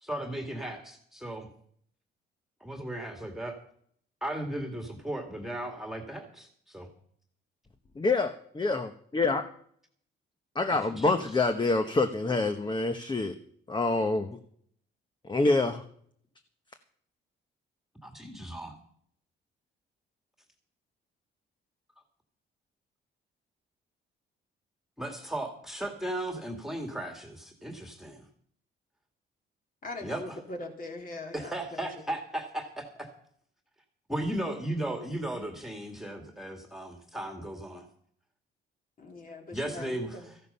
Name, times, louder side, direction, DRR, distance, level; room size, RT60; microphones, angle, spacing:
voice 1, 0.0-1.5 2.6-3.6 4.2-6.9 10.7-11.2 18.0-18.7 25.0-28.2 30.0-30.4 31.3-33.1 34.1-37.9 39.5-40.4, right 1 dB, ahead, 3 dB, 2.1 m, -36 dB
voice 2, 8.0-9.4 10.5-13.3 13.7-14.4 15.3-15.8, left 3 dB, 20° left, 7 dB, 1.0 m, -26 dB
voice 3, 29.8-31.5 39.0-40.3, left 2 dB, 45° left, 2 dB, 3.2 m, -41 dB
14.5 x 11.0 x 5.6 m, 0.63 s
cardioid pair, 90°, 20 cm